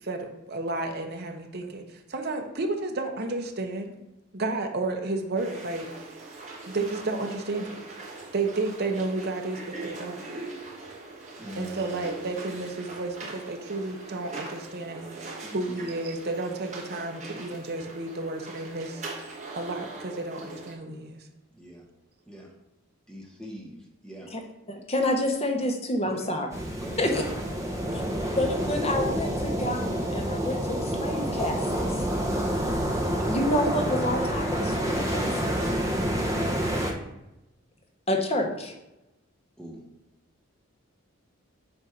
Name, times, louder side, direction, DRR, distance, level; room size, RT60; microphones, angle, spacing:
voice 1, 0.0-3.9 4.3-5.9 6.7-7.8 8.3-10.2 11.5-19.1 19.5-21.2, right 2 dB, 50° right, 4 dB, 0.8 m, -32 dB
sound 1, 5.4-20.7, right 3 dB, 35° right, 1.3 m, -41 dB
voice 2, 11.4-12.0 15.4-15.8 21.5-21.8 22.3-22.5 23.1-24.3 26.0-26.4 26.8-27.1 27.6-28.1 39.6-39.8, equal, 5° left, -1 dB, 1.0 m, -43 dB
voice 3, 24.7-26.5 27.0-27.2 27.9-28.0 28.4-31.6 33.3-35.5 38.1-38.7, left 1 dB, 30° left, 3 dB, 0.8 m, -28 dB
sound 2, 26.5-36.9, equal, 15° right, 0.7 m, -28 dB
7.8 x 2.6 x 5.7 m, 0.93 s
head